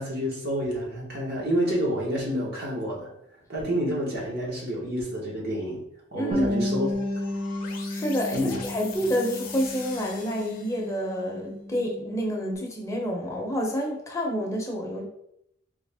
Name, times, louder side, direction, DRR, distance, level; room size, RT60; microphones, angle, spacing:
voice 1, 0.0-3.1 3.5-5.8 6.1-6.9 8.3-8.6, equal, 55° right, -4 dB, 1.2 m, -29 dB
voice 2, 6.1-6.7 7.9-15.0, equal, 15° left, -1 dB, 0.7 m, -28 dB
Bass guitar, 6.3-12.6, left 1 dB, 35° right, 0.8 m, -33 dB
sound 1, 6.8-11.1, left 5 dB, 50° left, 0.7 m, -42 dB
3.5 x 3.0 x 3.4 m, 0.75 s
head